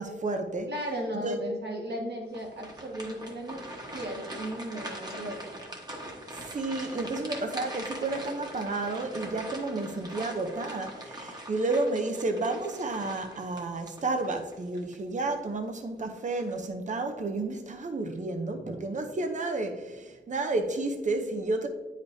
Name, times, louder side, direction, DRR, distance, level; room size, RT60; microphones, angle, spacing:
voice 1, 0.0-0.7 1.2-1.4 6.3-21.7, right 2 dB, 40° right, 0.7 m, -31 dB
voice 2, 0.7-3.6 3.9-5.6, right 1 dB, 60° right, 1.6 m, -36 dB
sound 1, 2.3-15.0 15.4-15.6 16.2-16.7, right 1 dB, 20° right, 1.3 m, -42 dB
9.6 x 5.1 x 2.7 m
wide cardioid pair, 115°, 19 cm